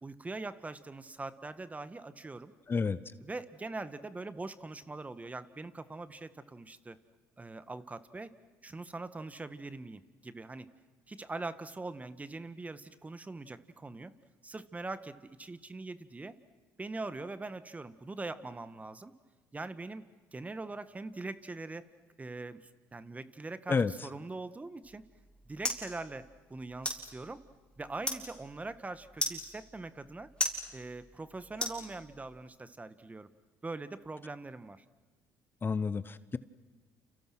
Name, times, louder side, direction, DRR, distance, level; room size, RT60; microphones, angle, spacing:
voice 1, 0.0-2.5 3.2-7.0 7.4-8.4 8.6-10.7 11.1-14.1 14.4-16.4 16.8-19.1 19.5-21.9 22.2-23.8 24.0-25.0 25.5-27.4 27.8-30.3 30.7-33.3 33.6-34.8, right 3 dB, 20° right, 12 dB, 1.7 m, -42 dB
voice 2, 2.7-3.0 23.7-23.9 35.6-36.4, left 5 dB, 30° left, 15 dB, 1.0 m, -30 dB
sound 1, 24.8-32.4, left 1 dB, 10° left, 7.4 m, -39 dB
30.0 x 29.5 x 6.2 m, 1.2 s
supercardioid pair, 75°, 7 cm